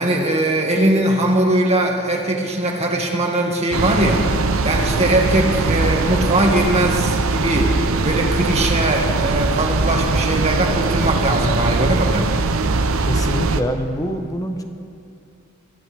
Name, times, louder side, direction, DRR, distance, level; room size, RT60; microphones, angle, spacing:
voice 1, 0.0-4.3 4.6-12.3, right 1 dB, 30° right, 0 dB, 2.1 m, -20 dB
sound 1, 3.7-13.6, right 3 dB, 70° right, 0.8 m, -20 dB
voice 2, 13.0-14.6, equal, 15° left, 5 dB, 1.1 m, -25 dB
23.5 x 15.0 x 3.5 m, 2.7 s
head